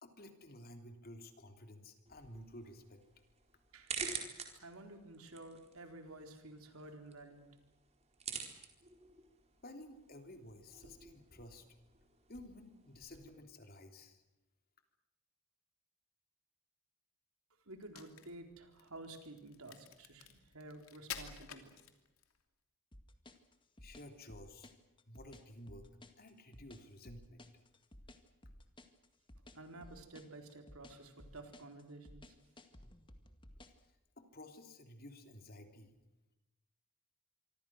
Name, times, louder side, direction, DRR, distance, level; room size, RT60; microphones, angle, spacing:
voice 1, 0.0-3.0 9.6-11.6 12.3-14.2 23.8-24.7 25.1-25.9 26.2-27.5 34.2-36.0, left 1 dB, 45° left, 6 dB, 3.4 m, -53 dB
sound 1, 2.1-13.3, right 5 dB, 30° right, 4.3 m, -49 dB
voice 2, 4.3-7.5 17.7-21.7 29.5-32.4, right 2 dB, 80° right, 5 dB, 4.1 m, -52 dB
Crack, 17.7-22.4, left 8 dB, 80° left, 2.9 m, -50 dB
sound 2, 22.9-33.8, left 1 dB, 25° left, 2.0 m, -56 dB
26.0 x 25.0 x 6.3 m, 1.0 s
head